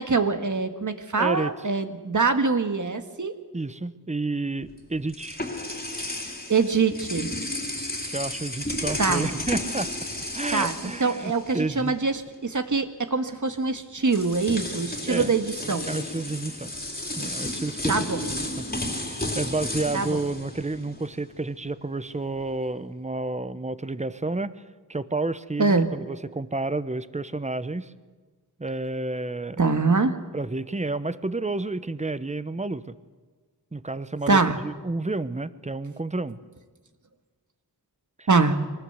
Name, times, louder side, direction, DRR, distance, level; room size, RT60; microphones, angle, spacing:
voice 1, 0.0-3.3 6.5-7.3 9.0-9.3 10.5-15.9 17.9-18.2 19.9-20.2 25.6-25.9 29.6-30.2 34.3-34.6 38.3-38.6, right 4 dB, 45° right, 8 dB, 1.8 m, -24 dB
voice 2, 1.2-1.5 3.5-5.4 8.1-9.9 10.3-12.0 15.1-15.3 15.8-16.7 17.1-17.9 18.3-18.7 18.9-24.6 24.9-27.9 28.6-29.6 30.3-33.0 33.7-36.4 38.2-38.3, right 2 dB, 15° right, 15 dB, 0.9 m, -30 dB
sound 1, 4.6-11.9 12.2-12.4 13.5-13.6 14.0-21.2, left 1 dB, 20° left, 3.3 m, -33 dB
23.5 x 19.0 x 8.1 m, 1.4 s
wide cardioid pair, 95°, 40 cm